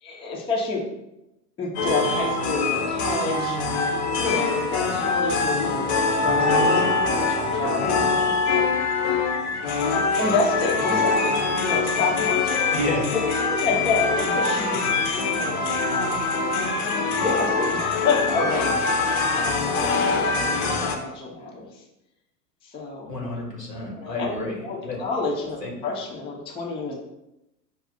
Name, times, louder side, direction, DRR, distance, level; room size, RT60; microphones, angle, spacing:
voice 1, 0.0-0.8 1.6-3.6 4.2-8.7 10.2-12.6 13.5-15.8 16.6-18.8 19.3-21.8 22.6-23.1 24.0-24.3 24.6-26.9, left 3 dB, 10° left, -2 dB, 0.5 m, -29 dB
sound 1, 1.7-21.0, left 3 dB, 45° left, 0.7 m, -23 dB
voice 2, 12.7-13.1 23.1-25.0 25.6-25.7, left 1 dB, 85° left, 0 dB, 1.3 m, -30 dB
5.3 x 2.4 x 3.7 m, 0.89 s
figure-of-eight pair, 90°, 47 cm